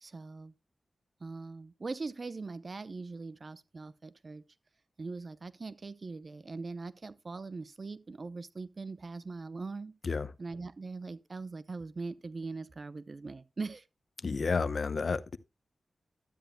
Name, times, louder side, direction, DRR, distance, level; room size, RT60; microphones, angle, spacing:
voice 1, 0.0-0.5 1.2-4.4 5.0-9.9 10.4-13.8, right 3 dB, 55° right, 0.7 m, -41 dB
voice 2, 14.2-15.4, left 4 dB, 60° left, 0.7 m, -31 dB
12.5 x 9.1 x 2.2 m
cardioid pair, 50°, 0 cm